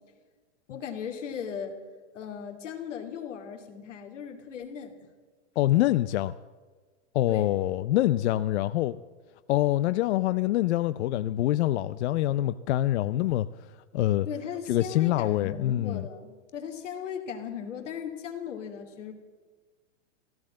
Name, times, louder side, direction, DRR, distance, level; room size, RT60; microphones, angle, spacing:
voice 1, 0.7-1.8 2.1-4.9 7.3-7.5 14.3-19.1, left 7 dB, 85° left, 2.9 m, -37 dB
voice 2, 5.6-6.3 7.1-9.0 9.5-13.5 13.9-14.3 14.7-16.0, left 14 dB, 65° left, 0.6 m, -25 dB
15.5 x 12.0 x 7.6 m
hypercardioid pair, 135°, 36 cm